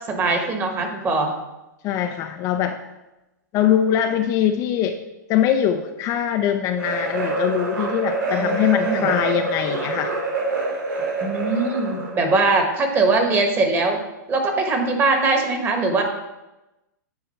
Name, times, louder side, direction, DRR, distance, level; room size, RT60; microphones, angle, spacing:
voice 1, 0.1-1.3 8.3-9.1 11.2-14.0 14.3-16.0, right 3 dB, 20° right, 3 dB, 1.5 m, -21 dB
voice 2, 1.8-2.8 3.5-5.0 5.3-10.1, left 10 dB, 30° left, 5 dB, 0.5 m, -22 dB
sound 1, 6.8-12.2, right 3 dB, 90° right, 2.8 m, -26 dB
9.6 x 4.9 x 4.3 m, 0.99 s
hypercardioid pair, 135°, 10 cm